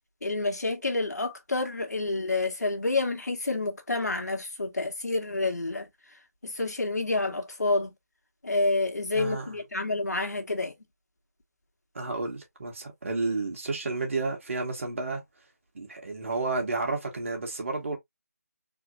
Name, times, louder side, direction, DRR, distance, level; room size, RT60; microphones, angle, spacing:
voice 1, 0.2-5.9 6.4-7.9 8.4-10.7, left 2 dB, 80° left, 1.8 m, -28 dB
voice 2, 9.1-9.6 11.9-15.2 15.7-18.0, right 3 dB, 50° right, 1.9 m, -31 dB
4.2 x 3.0 x 2.5 m
figure-of-eight pair, 165°, 9 cm